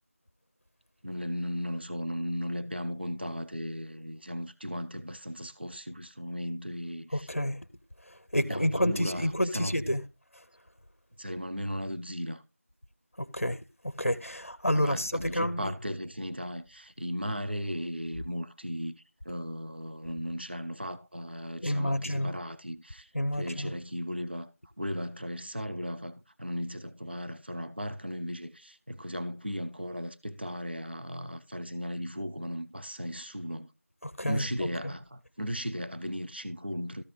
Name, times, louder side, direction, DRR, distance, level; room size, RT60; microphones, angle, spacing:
voice 1, 1.0-7.3 8.4-9.8 11.2-12.4 14.7-24.5 24.8-33.7 34.3-37.0, equal, 45° right, 0.5 m, -36 dB
voice 2, 7.1-7.7 8.0-10.0 10.3-10.4 13.2-15.7 21.6-22.3 23.1-23.7 34.0-34.4 34.8-34.9, equal, 50° left, 0.7 m, -29 dB
13.5 x 5.7 x 3.2 m
figure-of-eight pair, 180°, 8 cm